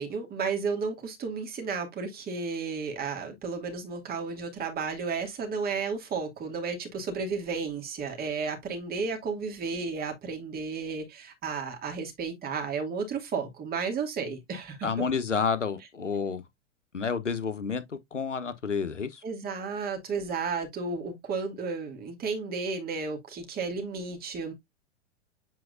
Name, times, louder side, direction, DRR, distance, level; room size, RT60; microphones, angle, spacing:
voice 1, 0.0-14.9 19.2-24.5, right 5 dB, 25° right, 2.4 m, -33 dB
voice 2, 14.8-16.4 16.9-19.2, left 5 dB, 90° left, 1.0 m, -30 dB
7.7 x 4.7 x 2.6 m
figure-of-eight pair, 95°, 36 cm